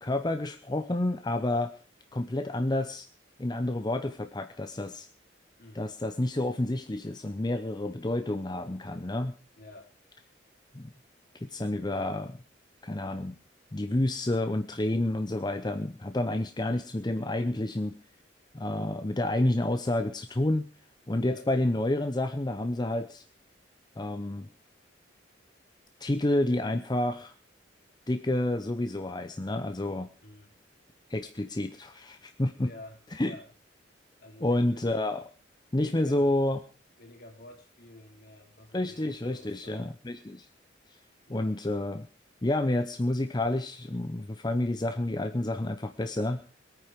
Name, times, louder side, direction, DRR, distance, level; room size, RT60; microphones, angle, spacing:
voice 1, 0.0-1.7 2.1-3.1 3.4-5.1 5.7-9.3 10.7-10.9 11.4-12.4 12.8-13.4 13.7-17.9 18.5-20.7 21.1-23.2 24.0-24.5 26.0-27.3 28.1-30.1 31.1-32.7 33.1-33.3 34.4-35.2 35.7-36.6 38.7-40.5 41.3-42.1 42.4-46.4, left 1 dB, 20° left, 9 dB, 0.7 m, -29 dB
voice 2, 9.6-9.9 16.3-16.5 21.2-21.5 30.2-30.6 32.6-33.5 34.2-34.8 35.7-36.3 36.9-40.0 41.3-41.6, left 1 dB, 55° left, 4 dB, 3.0 m, -50 dB
21.5 x 9.3 x 5.1 m, 0.38 s
head